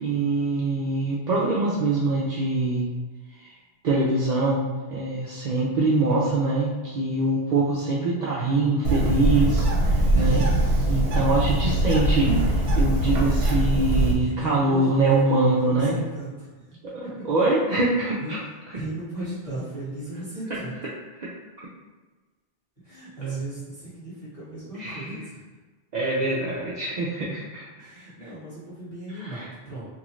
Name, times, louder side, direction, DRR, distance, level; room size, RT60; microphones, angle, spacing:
voice 1, 0.0-2.9 3.4-3.5 3.8-10.4 10.9-16.0 16.8-18.4 21.2-21.3 24.8-25.0 25.9-28.1 29.1-29.5, right 2 dB, 55° right, -6 dB, 0.5 m, -24 dB
Bird, 8.8-14.1, right 1 dB, 70° right, 0.9 m, -22 dB
voice 2, 14.2-15.4 15.6-17.2 18.2-18.3 18.7-20.8 22.8-25.4 27.8-29.8, right 2 dB, 30° left, -11 dB, 1.5 m, -36 dB
2.7 x 2.5 x 3.0 m, 1.3 s
omnidirectional pair, 1.1 m